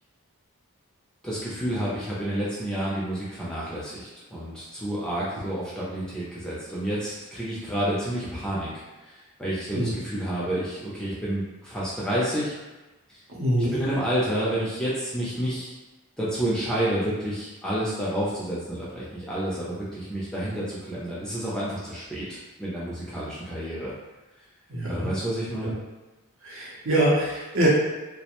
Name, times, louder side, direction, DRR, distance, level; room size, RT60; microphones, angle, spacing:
voice 1, 1.2-8.7 9.1-12.6 13.1-13.2 13.7-15.7 16.2-23.9 24.9-25.8, right 1 dB, 5° left, -9 dB, 0.4 m, -29 dB
voice 2, 13.3-13.8 24.7-25.1 25.6-25.7 26.4-27.7, right 1 dB, 60° right, -5 dB, 0.7 m, -24 dB
2.4 x 2.1 x 2.9 m, 1.1 s
head